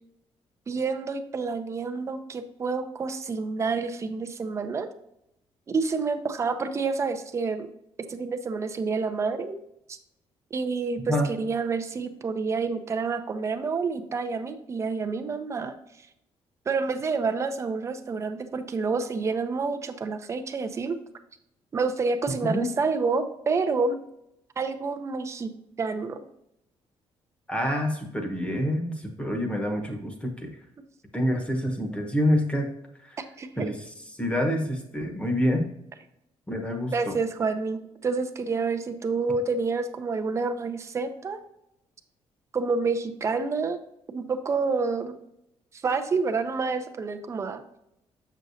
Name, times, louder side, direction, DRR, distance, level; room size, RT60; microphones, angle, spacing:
voice 1, 0.7-4.9 5.7-7.7 8.1-9.6 9.9-10.0 10.5-15.8 16.7-21.0 21.7-24.0 24.6-25.5 25.8-26.2 33.2-33.7 36.9-41.4 42.5-43.8 44.1-45.2 45.8-47.6, right 4 dB, 25° right, 7 dB, 0.6 m, -28 dB
voice 2, 27.5-30.5 31.1-32.7 33.0-33.2 33.6-33.8 34.2-35.7 36.5-37.2, equal, 10° left, 3 dB, 1.0 m, -27 dB
7.5 x 6.3 x 2.7 m, 0.80 s
cardioid pair, 170°, 11 cm